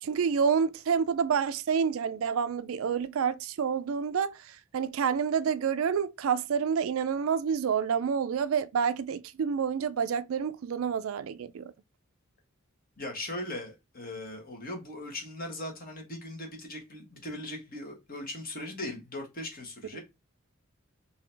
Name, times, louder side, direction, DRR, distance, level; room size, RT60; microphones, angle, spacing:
voice 1, 0.0-11.7 19.9-20.0, right 6 dB, 70° right, 0.4 m, -28 dB
voice 2, 13.0-20.0, left 1 dB, 45° left, 1.4 m, -39 dB
3.9 x 2.8 x 3.3 m
head